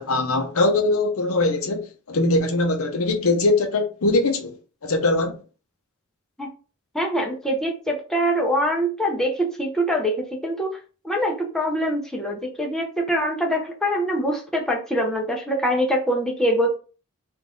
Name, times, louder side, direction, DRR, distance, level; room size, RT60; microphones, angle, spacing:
voice 1, 0.0-1.8 2.1-4.5 4.8-5.4, left 2 dB, 70° left, 0.7 m, -21 dB
voice 2, 6.9-10.8 11.0-16.7, equal, ahead, 0.8 m, -24 dB
3.9 x 2.6 x 3.7 m
head